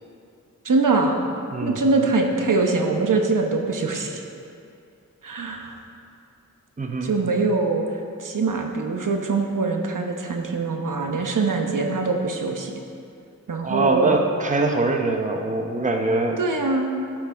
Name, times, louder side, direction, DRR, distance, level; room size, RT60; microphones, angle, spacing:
voice 1, 0.6-1.2 1.6-4.2 5.2-5.8 7.0-7.8 8.2-12.7 13.5-14.2 16.4-16.9, right 3 dB, 75° right, 3 dB, 1.0 m, -23 dB
voice 2, 1.5-2.1 6.8-7.1 13.6-16.4, right 2 dB, 25° right, 3 dB, 0.7 m, -23 dB
13.0 x 6.1 x 5.0 m, 2.5 s
wide cardioid pair, 105°, 32 cm